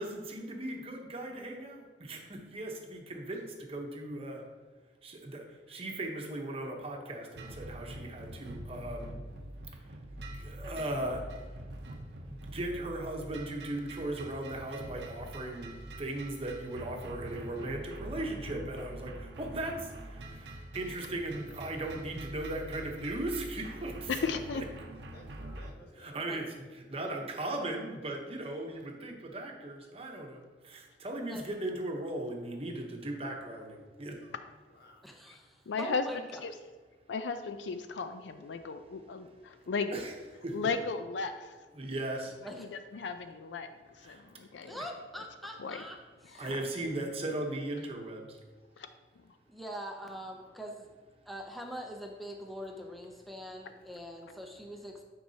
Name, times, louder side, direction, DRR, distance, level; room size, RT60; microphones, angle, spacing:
voice 1, 0.0-4.4 5.0-9.2 10.4-11.2 12.3-24.1 24.5-24.6 26.0-34.2 39.9-40.1 40.4-40.5 41.7-42.3 44.0-44.2 46.4-48.2, right 1 dB, 35° right, 1 dB, 0.9 m, -38 dB
sound 1, 7.4-25.7, right 1 dB, 70° right, 0.7 m, -45 dB
voice 2, 24.1-24.6 35.7-36.0 36.3-36.5 37.1-39.9 40.5-41.5 42.6-43.7 43.9-44.8 45.2-45.3 45.6-45.8 46.2-46.6 48.8-48.9, left 4 dB, 80° left, 9 dB, 0.4 m, -35 dB
voice 3, 25.1-26.5 34.7-35.0 45.6-46.0, left 1 dB, 60° left, -1 dB, 1.3 m, -56 dB
voice 4, 35.0-36.2 42.4-42.7 44.6-46.0 46.2-46.4 49.5-50.9 51.3-55.0, equal, ahead, 1 dB, 0.5 m, -43 dB
9.2 x 4.7 x 2.8 m, 1.4 s
head